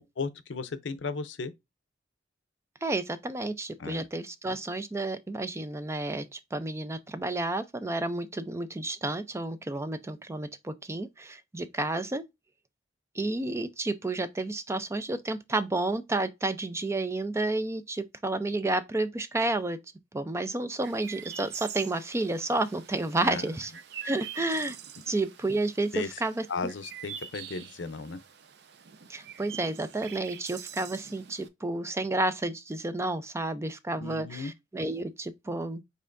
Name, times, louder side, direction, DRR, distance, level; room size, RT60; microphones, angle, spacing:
voice 1, 0.2-1.5 3.8-4.1 23.2-23.5 25.9-26.2 26.5-28.2 34.0-34.5, left 4 dB, 80° left, 0.6 m, -35 dB
voice 2, 2.8-12.2 13.2-19.8 20.1-23.7 24.0-24.8 25.1-26.4 29.1-35.8, right 2 dB, 15° right, 0.4 m, -31 dB
Chirp tweet, 20.8-31.5, right 8 dB, 65° right, 0.6 m, -45 dB
5.5 x 3.7 x 2.5 m
head